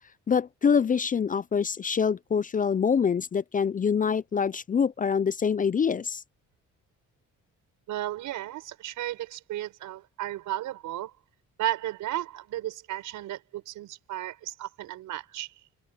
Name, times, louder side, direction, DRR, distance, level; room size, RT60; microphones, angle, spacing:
voice 1, 0.3-6.2, left 6 dB, 30° left, 0.4 m, -25 dB
voice 2, 7.9-11.1 11.6-15.5, right 14 dB, 85° right, 5.2 m, -34 dB
cardioid pair, 90°, 30 cm